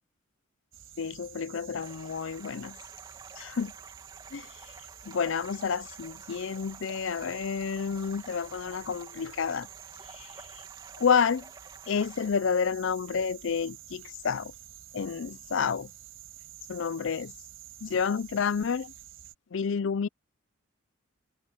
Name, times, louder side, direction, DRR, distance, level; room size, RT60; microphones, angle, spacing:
sound 1, 0.7-19.3, right 12 dB, 70° right, 5.2 m, -49 dB
voice 1, 1.0-2.8 3.4-3.7 4.3-4.5 5.1-9.7 10.1-10.6 11.0-11.4 11.9-14.5 14.9-15.9 16.7-17.3 17.8-18.9 19.5-20.1, left 6 dB, 60° left, 0.4 m, -29 dB
sound 2, 1.8-12.3, right 3 dB, 20° right, 2.3 m, -51 dB
open air
head